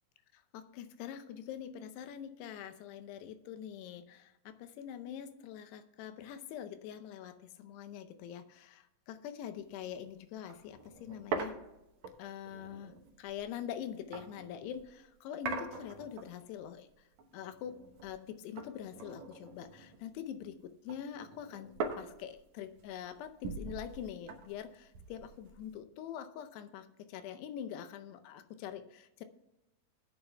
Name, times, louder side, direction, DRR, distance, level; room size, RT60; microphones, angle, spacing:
voice 1, 0.3-11.5 12.2-12.9 13.2-16.9 17.3-17.8 18.0-21.7 22.0-29.2, left 9 dB, 85° left, 10 dB, 2.9 m, -44 dB
sound 1, 9.6-9.8 10.1-10.2 10.5-14.9 15.4-16.6 16.9-18.3 18.6-20.3 20.6-25.8, right 4 dB, 70° right, 1.8 m, -43 dB
18.5 x 9.6 x 2.3 m, 0.91 s
omnidirectional pair, 4.7 m